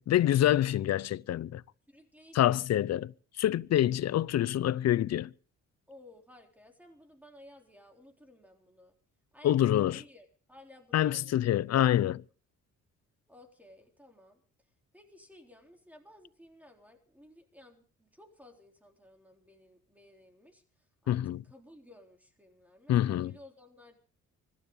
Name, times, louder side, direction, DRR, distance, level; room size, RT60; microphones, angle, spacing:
voice 1, 0.0-1.6 2.3-3.1 3.4-5.3 9.4-10.0 10.9-12.2 21.1-21.4 22.9-23.3, left 12 dB, 60° left, 0.7 m, -26 dB
voice 2, 1.9-2.7 5.9-8.9 9.3-11.4 13.3-14.4 14.9-24.0, left 1 dB, 5° right, 3.8 m, -56 dB
25.0 x 12.5 x 3.9 m
cardioid pair, 90°, 30 cm